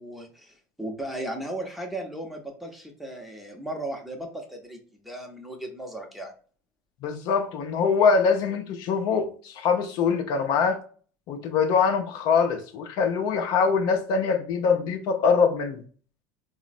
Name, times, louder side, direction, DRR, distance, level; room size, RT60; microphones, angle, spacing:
voice 1, 0.0-6.3, right 1 dB, ahead, 0.8 m, -36 dB
voice 2, 7.0-10.8 11.3-15.8, left 5 dB, 60° left, 0.5 m, -23 dB
3.7 x 2.0 x 2.5 m
hypercardioid pair, 90°, 8 cm